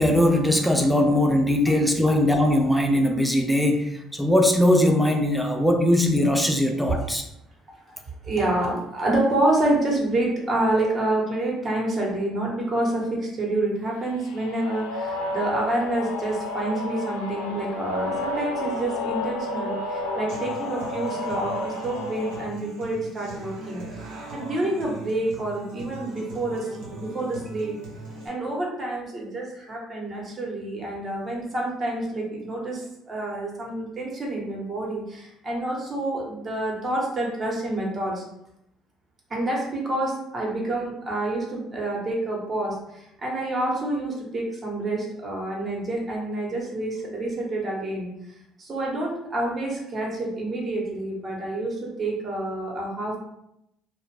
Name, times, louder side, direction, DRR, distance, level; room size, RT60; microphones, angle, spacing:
voice 1, 0.0-7.2, left 1 dB, ahead, 3 dB, 0.5 m, -20 dB
voice 2, 8.2-23.8 24.3-27.7 28.2-38.2 39.3-48.1 48.6-53.2, right 2 dB, 35° right, -2 dB, 1.0 m, -28 dB
sound 1, 14.2-22.5, left 2 dB, 90° left, 0.4 m, -31 dB
Human voice / Acoustic guitar, 20.3-28.3, right 2 dB, 75° right, 0.9 m, -40 dB
2.5 x 2.2 x 3.2 m, 0.81 s
hypercardioid pair, 65°, 0 cm